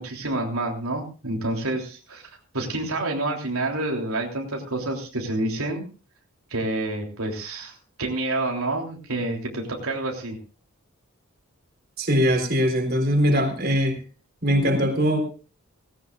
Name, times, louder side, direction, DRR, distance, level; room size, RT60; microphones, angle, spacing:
voice 1, 0.0-2.3 2.5-5.8 6.5-10.4, right 2 dB, 85° right, 0 dB, 3.3 m, -28 dB
voice 2, 12.0-14.0 14.4-15.2, equal, 45° right, 3 dB, 3.9 m, -21 dB
18.0 x 17.5 x 2.5 m, 0.35 s
head